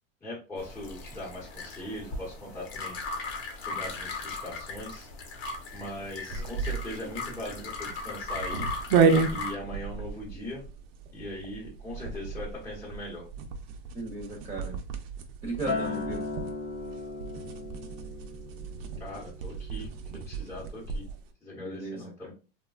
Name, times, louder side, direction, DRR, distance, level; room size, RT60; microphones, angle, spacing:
voice 1, 0.2-3.0 3.6-5.1 5.7-8.7 9.3-10.7 11.1-13.3 19.0-19.9 20.1-21.0 21.4-22.3, left 1 dB, 10° left, -5 dB, 0.9 m, -40 dB
sound 1, 0.6-9.5, left 3 dB, 70° left, 1.0 m, -38 dB
sound 2, 6.3-21.2, right 5 dB, 65° right, 0.6 m, -32 dB
voice 2, 13.9-14.8 15.4-16.2 21.6-22.3, right 2 dB, 15° right, -2 dB, 0.8 m, -36 dB
Acoustic guitar, 15.7-20.1 20.5-20.9, left 3 dB, 35° left, 0.7 m, -37 dB
3.1 x 2.2 x 2.3 m, 0.32 s
supercardioid pair, 130°, 32 cm